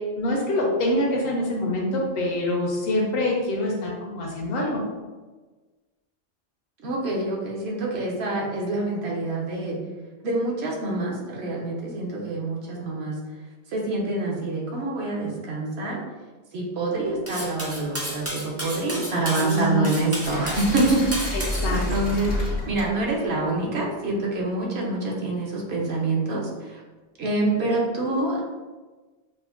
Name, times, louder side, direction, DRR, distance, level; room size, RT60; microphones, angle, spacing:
voice 1, 0.0-4.8 19.1-19.9 21.3-21.9, left 1 dB, 70° left, -2 dB, 0.8 m, -25 dB
voice 2, 6.8-9.8 10.2-13.2 13.7-16.0 16.5-26.8 27.2-28.4, right 2 dB, 75° right, -2 dB, 1.0 m, -26 dB
Cutlery silverware, 17.3-21.6, right 1 dB, 25° right, 0.3 m, -32 dB
sound 1, 20.2-24.3, left 1 dB, 90° left, 1.1 m, -30 dB
5.0 x 2.1 x 2.4 m, 1.3 s
omnidirectional pair, 1.1 m